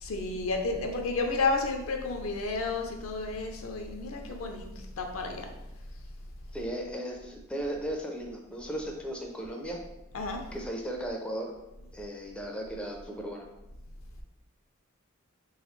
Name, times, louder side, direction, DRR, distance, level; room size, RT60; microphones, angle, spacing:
voice 1, 0.0-4.7 5.0-5.5 10.1-10.4, left 3 dB, 70° left, 3 dB, 0.6 m, -31 dB
voice 2, 6.5-9.8 10.5-11.5 11.9-13.4, right 1 dB, 5° left, 0 dB, 0.4 m, -36 dB
3.9 x 3.3 x 3.1 m, 0.94 s
head